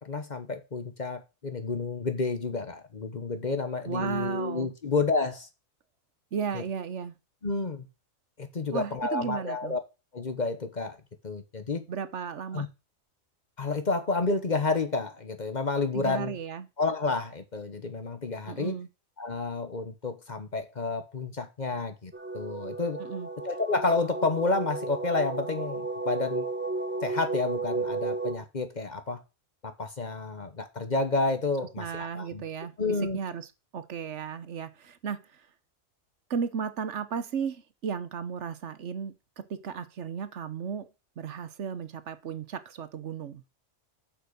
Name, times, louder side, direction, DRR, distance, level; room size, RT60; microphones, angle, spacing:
voice 1, 0.0-5.5 6.5-6.6 7.4-7.9 8.4-9.8 10.1-11.0 11.2-11.8 12.5-12.7 13.6-16.4 16.8-18.8 19.2-23.0 23.4-26.5 27.0-29.2 29.6-32.5 32.8-33.2, left 3 dB, 40° left, 1.1 m, -30 dB
voice 2, 3.9-4.7 6.3-7.1 8.7-9.8 11.9-12.7 15.9-16.7 18.5-18.9 23.0-23.3 31.8-32.7 33.1-33.5 33.7-35.4 36.3-40.9 41.2-43.4, right 6 dB, 65° right, 1.2 m, -34 dB
sound 1, 22.1-28.4, right 3 dB, 10° right, 0.9 m, -33 dB
7.8 x 6.0 x 7.0 m
omnidirectional pair, 1.3 m